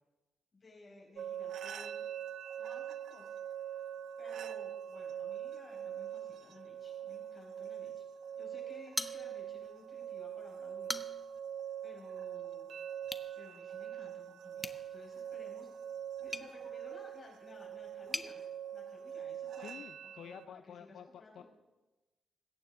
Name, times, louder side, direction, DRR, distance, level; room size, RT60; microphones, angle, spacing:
voice 1, 0.5-2.0 2.6-3.4 4.2-8.0 8.4-10.9 11.8-12.7 13.4-15.7 16.2-18.4 18.7-20.6 20.9-21.4, left 2 dB, 30° left, -2 dB, 5.3 m, -56 dB
sound 1, 1.2-20.5, right 9 dB, 80° right, 0.5 m, -43 dB
sound 2, 8.9-9.7 10.1-10.2 10.7-11.4 13.0-13.3 14.6-18.3, left 1 dB, 10° left, 0.6 m, -43 dB
voice 2, 19.6-21.4, left 9 dB, 80° left, 9 dB, 0.4 m, -50 dB
21.5 x 9.4 x 3.8 m, 1.1 s
wide cardioid pair, 140°, 0 cm